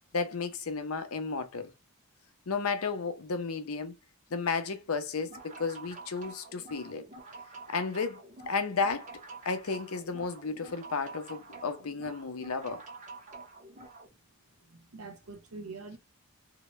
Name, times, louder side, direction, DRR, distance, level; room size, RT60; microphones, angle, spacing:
voice 1, 0.1-1.7 2.5-3.9 4.3-7.0 7.7-9.1 9.4-12.8, left 4 dB, 75° left, 0.6 m, -33 dB
sound 1, 5.2-14.1, right 3 dB, 35° right, 0.6 m, -48 dB
voice 2, 14.7-16.0, right 3 dB, 75° right, 0.8 m, -44 dB
2.8 x 2.1 x 3.0 m
head